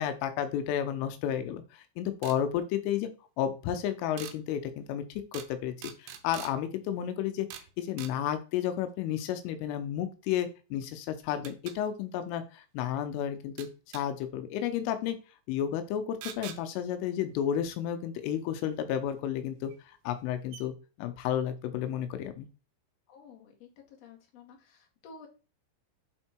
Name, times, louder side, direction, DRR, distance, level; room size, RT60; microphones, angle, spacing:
voice 1, 0.0-3.1 3.4-5.0 5.3-5.7 6.0-13.7 13.9-15.2 15.5-19.7 20.0-20.7 21.0-22.5, left 10 dB, 85° left, 8 dB, 3.3 m, -32 dB
sound 1, 2.2-2.4 4.2-4.4 5.3-5.5 5.8-6.5 7.5-7.7 8.0-8.1 10.4-10.5 11.4-11.8 13.6-14.0 16.2-16.6 18.6-18.7 19.7-19.8 20.2-20.3 20.5-20.6, right 10 dB, 75° right, 2.7 m, -43 dB
voice 2, 23.1-25.3, left 4 dB, 50° left, 0 dB, 2.0 m, -52 dB
8.5 x 4.4 x 4.4 m, 0.33 s
omnidirectional pair, 5.8 m